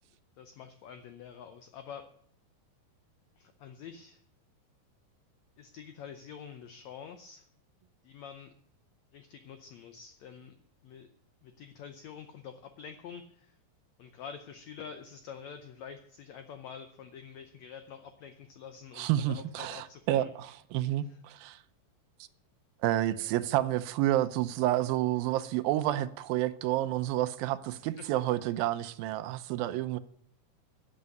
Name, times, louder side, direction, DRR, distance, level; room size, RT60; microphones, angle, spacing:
voice 1, 0.4-2.1 3.3-4.2 5.6-7.5 8.0-8.5 9.1-10.5 10.8-11.1 11.4-13.6 14.0-20.3 21.0-21.2 27.9-28.1, left 7 dB, 80° left, 1.6 m, -47 dB
voice 2, 19.0-21.6 22.8-30.0, right 14 dB, 80° right, 2.4 m, -30 dB
11.0 x 7.4 x 9.0 m
omnidirectional pair, 4.2 m